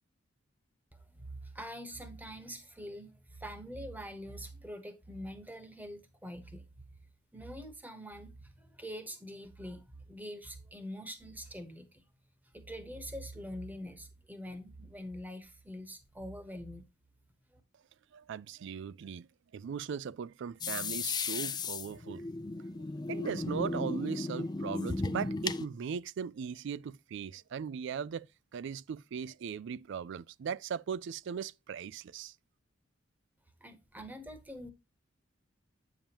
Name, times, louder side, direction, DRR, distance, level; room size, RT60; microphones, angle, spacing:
voice 1, 0.9-6.7 7.3-12.0 12.5-16.8 17.5-17.6 33.6-34.7, equal, 10° right, 1.2 m, -44 dB
voice 2, 18.1-22.3 23.1-32.3, right 7 dB, 65° right, 0.3 m, -39 dB
sound 1, 20.6-25.7, left 3 dB, 20° left, 0.4 m, -35 dB
8.7 x 7.1 x 2.9 m
head